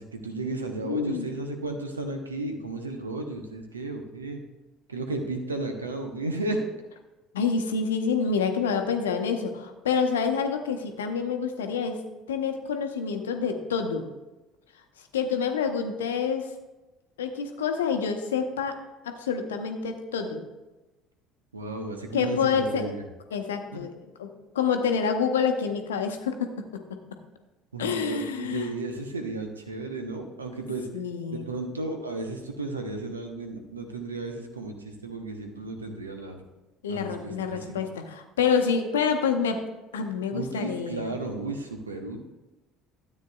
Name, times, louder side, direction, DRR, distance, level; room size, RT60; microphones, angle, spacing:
voice 1, 0.0-4.4 4.9-6.6 21.5-23.0 23.7-23.8 27.7-30.9 31.3-36.4 36.9-37.8 40.3-42.2, right 2 dB, 85° right, 4 dB, 0.9 m, -34 dB
voice 2, 0.8-1.3 7.3-14.1 15.1-16.5 17.2-18.8 19.0-20.5 22.1-22.9 23.3-24.3 24.5-27.0 27.8-28.7 30.9-31.5 36.8-39.7 39.9-41.1, left 6 dB, 75° left, 6 dB, 0.8 m, -27 dB
13.0 x 8.4 x 2.3 m, 1.1 s
figure-of-eight pair, 60°, 0 cm